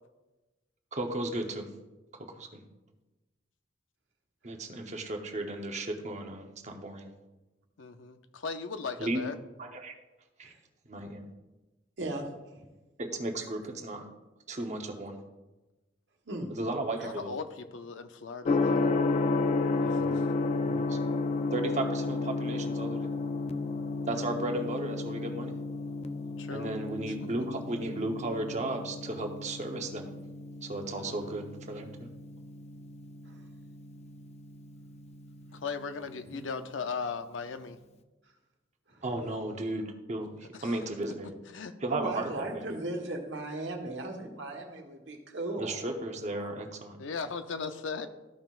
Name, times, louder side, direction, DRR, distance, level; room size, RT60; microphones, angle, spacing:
voice 1, 0.9-1.7 2.1-2.6 4.4-7.1 9.0-9.2 9.6-9.9 10.4-10.5 10.9-11.2 13.0-14.1 14.5-15.2 16.5-17.3 19.8-20.1 20.7-21.0 21.5-23.1 24.1-25.5 26.5-30.1 30.6-32.1 36.3-36.4 39.0-40.3 40.6-41.3 41.8-42.8 45.6-47.0, right 2 dB, 40° right, 4 dB, 0.9 m, -35 dB
voice 2, 7.8-9.4 17.0-18.9 19.9-20.2 24.1-24.3 26.4-26.7 27.2-27.3 30.9-31.4 35.5-37.8 40.5-40.8 41.5-41.7 47.0-48.1, left 5 dB, 90° left, 9 dB, 0.6 m, -38 dB
Gong, 18.5-36.3, left 3 dB, 35° left, 0.4 m, -33 dB
voice 3, 41.9-45.8, right 2 dB, 70° right, 2 dB, 1.3 m, -36 dB
14.0 x 5.7 x 2.5 m, 1.1 s
head